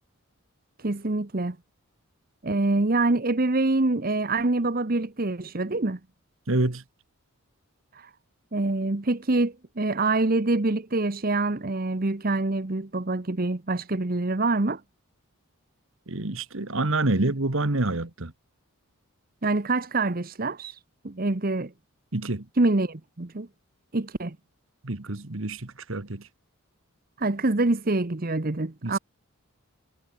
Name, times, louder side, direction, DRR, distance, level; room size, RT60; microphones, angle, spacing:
voice 1, 0.8-1.6 2.4-6.0 7.9-8.1 8.5-14.8 19.4-20.8 21.0-21.7 22.6-23.5 23.9-24.4 27.2-29.0, right 2 dB, 40° right, 1.0 m, -25 dB
voice 2, 6.5-6.8 16.1-18.3 22.1-22.4 24.8-26.2 28.8-29.0, right 2 dB, 60° right, 1.5 m, -27 dB
head